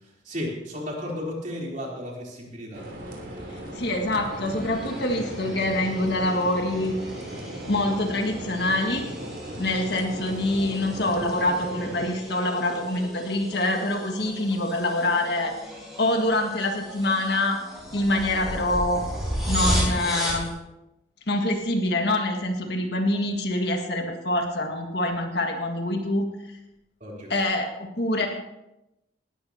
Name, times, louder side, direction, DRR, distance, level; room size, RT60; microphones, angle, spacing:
voice 1, 0.2-2.9 10.2-10.3 27.0-27.4, left 1 dB, 40° right, -3 dB, 3.7 m, -34 dB
sound 1, 2.7-12.1, right 1 dB, 90° right, 3.5 m, -37 dB
voice 2, 3.6-7.0 7.7-9.1 9.6-15.5 16.0-17.6 17.9-19.0 19.5-20.5 21.3-26.3 27.3-28.3, left 1 dB, 60° left, 3 dB, 1.8 m, -25 dB
sound 2, 4.2-20.5, equal, ahead, 6.1 m, -34 dB
19.0 x 13.0 x 2.9 m, 0.91 s
head